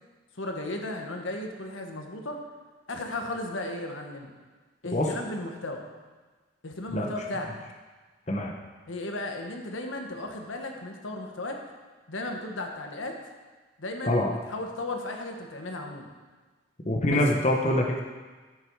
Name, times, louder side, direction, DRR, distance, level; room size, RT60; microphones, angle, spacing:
voice 1, 0.3-2.4 2.9-4.3 4.8-5.9 6.6-7.5 8.9-11.6 12.1-13.2 13.8-16.1 17.1-17.2, left 2 dB, 85° left, 3 dB, 1.3 m, -35 dB
voice 2, 16.8-18.0, left 1 dB, 35° left, 0 dB, 1.0 m, -24 dB
14.0 x 6.9 x 4.7 m, 1.3 s
head